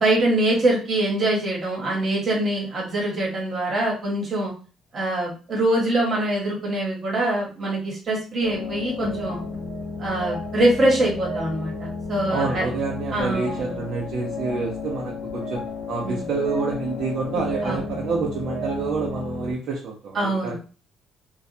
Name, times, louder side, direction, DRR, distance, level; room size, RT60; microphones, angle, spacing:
voice 1, 0.0-4.5 4.9-9.4 10.0-12.6 13.1-13.8 16.0-16.2 17.6-17.8 20.1-20.6, right 1 dB, 30° right, -3 dB, 1.1 m, -24 dB
sound 1, 8.4-19.5, left 3 dB, 90° left, 0.8 m, -32 dB
voice 2, 12.3-20.6, right 4 dB, 60° right, -2 dB, 0.5 m, -28 dB
2.2 x 2.1 x 2.7 m, 0.35 s
cardioid pair, 170°, 0 cm